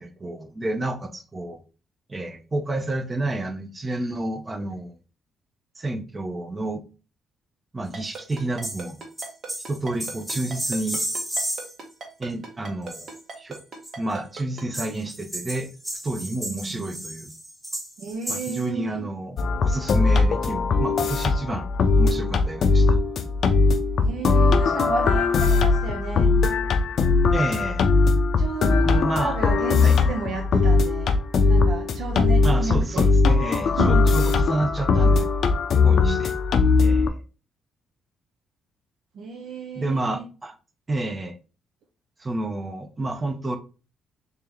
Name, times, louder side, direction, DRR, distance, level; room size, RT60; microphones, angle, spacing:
voice 1, 0.0-1.6 2.1-4.9 5.8-6.8 7.7-9.0 9.7-11.0 12.2-13.6 14.0-17.3 18.3-21.7 22.0-23.0 27.3-27.8 28.8-29.4 29.8-29.9 32.4-35.3 35.8-36.3 36.8-37.2 39.7-40.5 40.9-41.4 42.2-43.6, right 2 dB, 25° right, 0.7 m, -30 dB
Ringtone, 7.9-14.6, right 4 dB, 55° right, 1.1 m, -37 dB
sound 1, 8.1-8.3 8.6-8.9 9.2-11.8 12.9-13.9 14.7-18.7, right 1 dB, 10° right, 1.3 m, -33 dB
voice 2, 16.5-16.9 18.0-19.0 24.0-26.3 28.4-33.1 33.6-34.3 35.7-36.2 39.1-40.3, right 4 dB, 75° right, 0.6 m, -32 dB
sound 2, 19.4-37.1, left 4 dB, 60° left, 0.5 m, -20 dB
3.5 x 2.8 x 3.4 m
cardioid pair, 90°, 0 cm